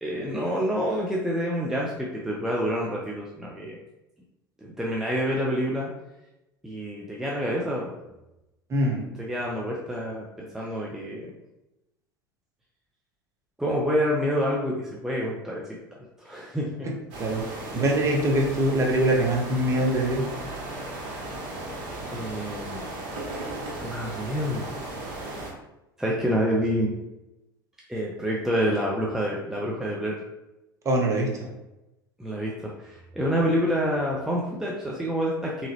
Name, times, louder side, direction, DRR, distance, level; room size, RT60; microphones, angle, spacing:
voice 1, 0.0-3.8 4.6-5.9 6.6-7.9 9.2-11.3 13.6-15.6 16.0-16.9 22.1-22.8 23.8-24.7 26.0-26.9 27.9-30.1 32.2-35.7, equal, 5° right, -3 dB, 0.6 m, -27 dB
voice 2, 8.7-9.0 17.2-20.3 30.8-31.5, right 1 dB, 25° right, 0 dB, 1.0 m, -23 dB
sound 1, 17.1-25.5, right 2 dB, 55° right, 1.1 m, -36 dB
3.7 x 3.0 x 2.9 m, 0.94 s
figure-of-eight pair, 75°, 11 cm